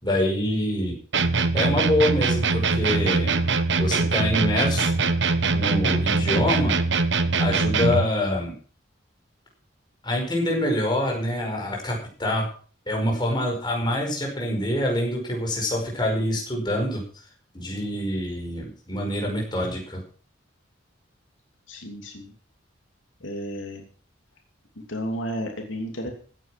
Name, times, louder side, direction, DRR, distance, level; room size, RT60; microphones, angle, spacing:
voice 1, 0.0-1.0 1.5-3.4 3.8-5.0 5.5-6.8 7.4-8.5 10.0-12.5 12.9-17.0 17.5-20.0, left 1 dB, 20° left, 0 dB, 5.1 m, -25 dB
sound 1, 1.1-8.1, right 3 dB, 60° right, 1.1 m, -22 dB
voice 2, 21.7-22.3 23.2-23.8 24.8-26.1, equal, 80° left, 3 dB, 2.9 m, -32 dB
15.5 x 9.4 x 5.9 m, 0.41 s
head